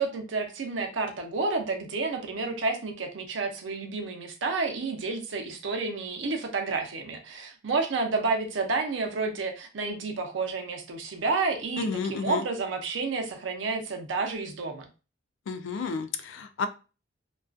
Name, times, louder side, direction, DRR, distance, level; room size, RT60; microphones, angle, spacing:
voice 1, 0.0-14.9, right 3 dB, 85° right, 4 dB, 0.6 m, -30 dB
voice 2, 11.8-12.4 15.5-16.7, left 5 dB, 85° left, 10 dB, 0.3 m, -31 dB
2.4 x 2.3 x 2.3 m, 0.33 s
head